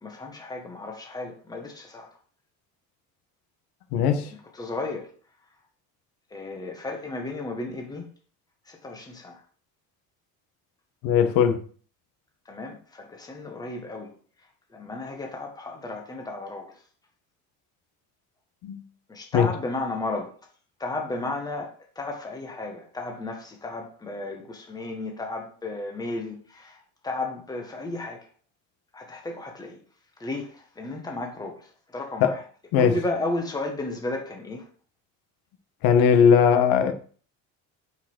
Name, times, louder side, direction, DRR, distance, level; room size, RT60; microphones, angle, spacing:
voice 1, 0.0-2.1 4.2-5.1 6.3-8.1 8.7-9.4 12.5-14.1 14.7-16.7 19.1-20.3 20.8-26.8 27.0-28.2 28.9-29.8 30.2-30.5 30.8-31.6 31.9-32.4 32.8-34.6, left 2 dB, 10° left, 1.6 m, -33 dB
voice 2, 3.9-4.2 11.0-11.6 18.6-18.8 19.3-19.5 32.2-32.3 32.7-33.0 35.8-36.9, left 7 dB, 85° left, 1.7 m, -19 dB
8.9 x 5.6 x 6.4 m
cardioid pair, 175°, 36 cm